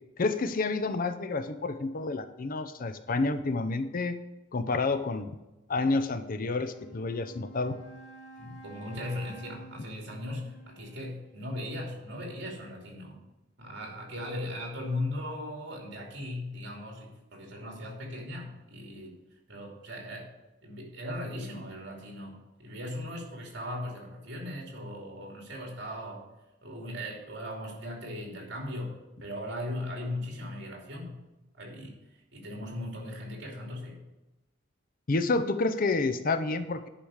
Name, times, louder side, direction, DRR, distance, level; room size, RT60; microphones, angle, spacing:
voice 1, 0.2-4.2 4.5-5.3 5.7-7.8 35.1-36.9, left 3 dB, 45° left, 10 dB, 0.6 m, -29 dB
Wind instrument woodwind instrument, 6.6-11.5, right 2 dB, 90° left, 2.2 m, -51 dB
voice 2, 8.4-13.2 13.6-19.2 19.5-20.3 20.6-26.2 26.6-31.2 31.6-31.9 32.3-34.0, left 1 dB, 65° right, 0 dB, 2.8 m, -38 dB
10.0 x 5.1 x 6.4 m, 1.0 s
head